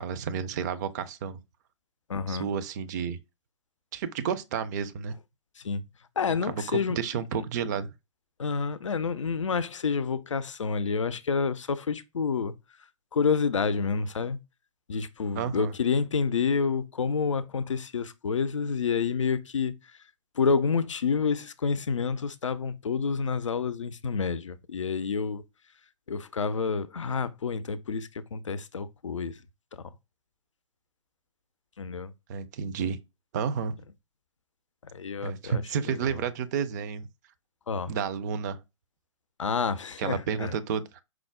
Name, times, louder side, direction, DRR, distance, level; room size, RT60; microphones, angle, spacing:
voice 1, 0.0-1.4 2.3-3.2 3.9-5.1 6.5-7.9 15.3-15.7 32.3-33.0 33.3-33.8 35.2-37.1 37.9-38.6 40.0-41.0, right 7 dB, 35° right, 0.4 m, -31 dB
voice 2, 2.1-2.5 5.6-5.8 6.2-7.0 7.4-7.5 8.4-12.5 13.1-14.4 14.9-19.7 20.4-25.4 26.1-29.4 29.8-29.9 31.8-32.1 34.9-36.2 37.7-37.9 39.4-40.5, left 5 dB, 75° left, 0.4 m, -29 dB
4.8 x 2.0 x 3.4 m
figure-of-eight pair, 115°, 16 cm